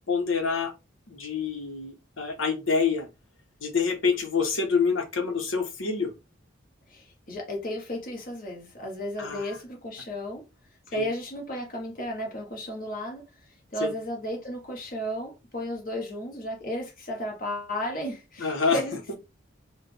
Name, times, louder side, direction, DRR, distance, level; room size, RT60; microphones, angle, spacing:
voice 1, 0.1-0.7 1.1-3.1 3.6-6.1 9.2-9.6 10.9-11.1 13.8-13.9 18.4-18.8 19.1-19.2, left 5 dB, 90° left, 1.1 m, -27 dB
voice 2, 6.9-10.4 10.9-13.2 13.7-19.1, equal, 45° left, 1.5 m, -34 dB
4.4 x 2.5 x 3.4 m
head